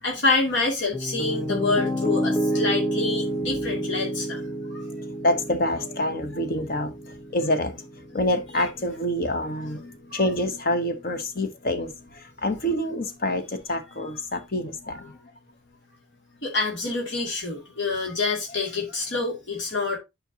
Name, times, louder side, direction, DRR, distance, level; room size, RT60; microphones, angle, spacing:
voice 1, 0.0-4.4 4.7-4.9 10.1-10.3 15.0-15.1 16.4-20.0, left 3 dB, 75° left, 2.5 m, -27 dB
Piano, 0.9-9.0, right 1 dB, 10° left, 0.5 m, -30 dB
voice 2, 5.2-6.9 7.3-7.7 8.1-11.9 12.4-15.0, left 1 dB, 50° left, 1.0 m, -26 dB
9.8 x 5.2 x 2.8 m
head